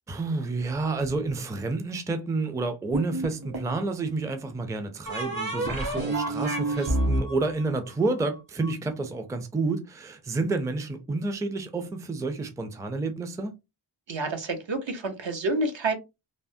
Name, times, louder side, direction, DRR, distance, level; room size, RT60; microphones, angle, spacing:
voice 1, 0.1-13.5, right 3 dB, 5° right, 0.4 m, -29 dB
sound 1, 2.9-3.8 5.1-8.7, right 2 dB, 45° right, 1.2 m, -29 dB
voice 2, 14.1-15.9, right 2 dB, 65° right, 0.8 m, -28 dB
3.2 x 2.1 x 2.6 m
wide cardioid pair, 70°, 48 cm